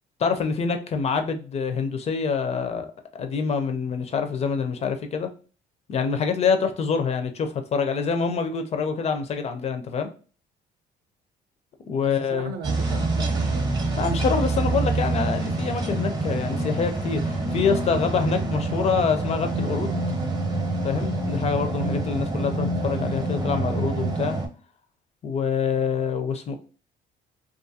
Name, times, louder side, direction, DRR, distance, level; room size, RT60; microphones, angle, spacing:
voice 1, 0.2-5.3 5.9-10.1 11.9-12.5 14.0-20.0 20.8-24.4 25.2-26.6, left 5 dB, 40° left, 0.4 m, -26 dB
voice 2, 12.0-13.8 21.8-22.0, right 6 dB, 70° right, 0.6 m, -36 dB
sound 1, 12.6-24.5, right 2 dB, 25° right, 0.7 m, -26 dB
2.5 x 2.4 x 2.6 m
cardioid pair, 110°, 17 cm